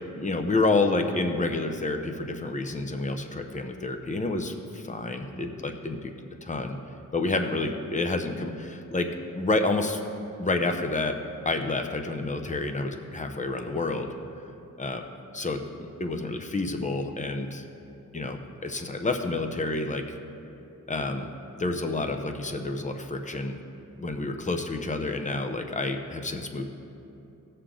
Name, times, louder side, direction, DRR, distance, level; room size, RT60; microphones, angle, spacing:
voice 1, 0.2-6.1 6.4-6.8 7.1-9.1 9.3-10.0 10.4-11.2 11.4-14.1 14.8-15.0 15.3-17.6 18.1-20.2 20.9-21.3 21.6-23.6 24.0-26.6, left 2 dB, 20° left, 5 dB, 0.8 m, -29 dB
17.5 x 6.7 x 3.8 m, 2.9 s
wide cardioid pair, 115°, 33 cm